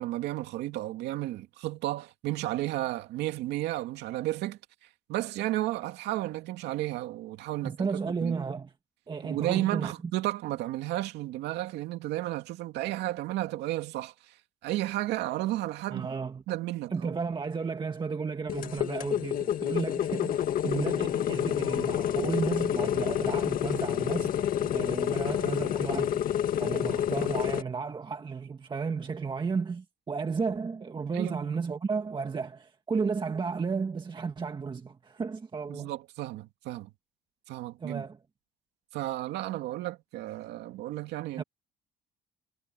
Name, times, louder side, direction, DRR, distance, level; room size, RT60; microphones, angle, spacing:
voice 1, 0.0-7.8 8.2-8.4 9.2-14.4 14.6-16.1 16.5-17.1 31.1-31.5 35.7-36.9 37.5-38.0 38.9-41.4, right 15 dB, 85° right, 2.5 m, -33 dB
voice 2, 7.6-8.7 9.1-10.1 15.9-16.4 16.9-24.3 24.6-35.9 37.8-38.2 41.4-41.5, right 5 dB, 25° right, 1.7 m, -33 dB
sound 1, 18.5-27.6, left 10 dB, 55° left, 1.8 m, -29 dB
cardioid pair, 110°, 17 cm